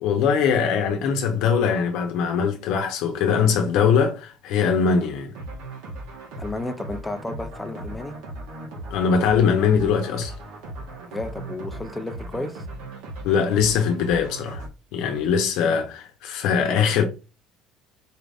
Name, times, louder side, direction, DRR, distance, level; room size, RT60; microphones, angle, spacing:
voice 1, 0.0-5.3 8.9-10.3 13.2-14.6 14.9-17.0, left 6 dB, 60° left, 0.8 m, -21 dB
sound 1, 5.3-14.7, right 2 dB, 80° right, 1.4 m, -37 dB
voice 2, 6.4-8.2 11.1-12.6 15.6-15.8, left 2 dB, 10° left, 0.4 m, -32 dB
4.5 x 2.6 x 3.3 m
cardioid pair, 180°, 0 cm